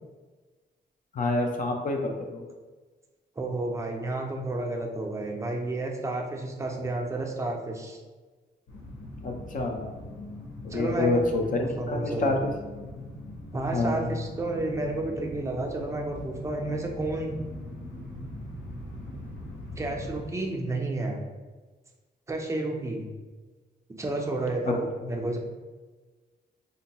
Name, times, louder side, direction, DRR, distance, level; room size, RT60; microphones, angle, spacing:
voice 1, 1.1-2.4 9.2-9.9 10.7-12.5 13.7-14.1 24.6-24.7, left 2 dB, 45° left, 2 dB, 0.4 m, -27 dB
voice 2, 3.4-8.0 10.7-11.1 11.4-12.3 13.5-17.4 19.8-21.2 22.3-23.1 24.0-25.4, right 2 dB, 15° right, 1 dB, 0.4 m, -31 dB
sound 1, 8.7-20.2, left 1 dB, 85° left, 0.6 m, -41 dB
3.8 x 2.2 x 2.8 m, 1.3 s
wide cardioid pair, 150°, 18 cm